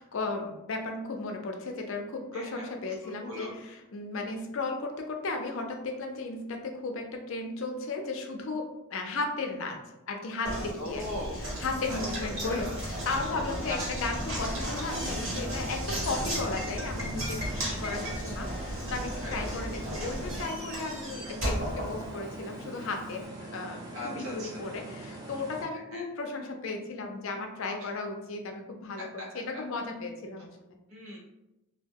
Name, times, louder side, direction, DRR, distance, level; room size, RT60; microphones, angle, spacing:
voice 1, 0.0-9.8 10.1-23.2 23.5-30.8, left 3 dB, 65° left, 3 dB, 0.4 m, -35 dB
voice 2, 2.3-2.7 3.0-3.5 10.8-11.4 11.9-12.0 12.5-12.8 13.7-13.8 17.6-18.0 19.2-19.4 23.9-24.7 25.9-26.0 30.9-31.2, left 1 dB, 80° right, -3 dB, 0.9 m, -39 dB
Knock, 10.4-22.6, equal, 60° right, 1.2 m, -34 dB
sound 1, 15.8-25.6, right 2 dB, 15° right, 0.4 m, -43 dB
2.3 x 2.1 x 3.4 m, 0.94 s
head